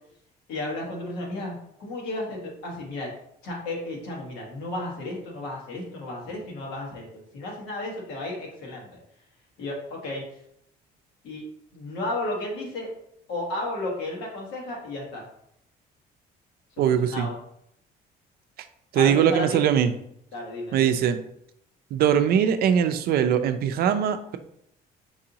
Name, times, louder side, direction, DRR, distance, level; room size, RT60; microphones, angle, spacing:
voice 1, 0.5-3.1 3.4-8.9 9.6-10.2 11.2-11.4 11.7-12.9 13.3-15.3 16.8-17.4 18.9-19.6 20.3-20.8, left 2 dB, 90° left, -2 dB, 1.4 m, -33 dB
voice 2, 16.8-17.3 18.9-19.9 20.7-21.2 21.9-24.4, right 8 dB, 65° right, 10 dB, 0.4 m, -21 dB
4.7 x 2.6 x 2.8 m, 0.73 s
cardioid pair, 110°, 17 cm